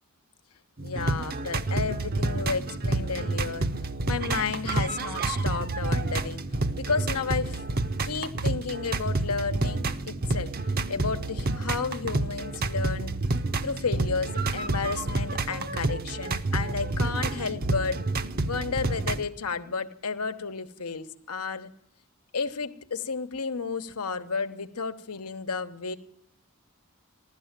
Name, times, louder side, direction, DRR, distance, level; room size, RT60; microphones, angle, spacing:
voice 1, 0.8-3.7 4.1-6.4 6.8-7.6 8.0-10.5 10.9-13.1 13.6-18.0 18.4-21.7 22.3-26.0, left 5 dB, 90° left, 8 dB, 1.1 m, -32 dB
sound 1, 0.8-19.2, right 2 dB, 40° right, 0.7 m, -29 dB
15.5 x 12.5 x 7.4 m, 0.71 s
head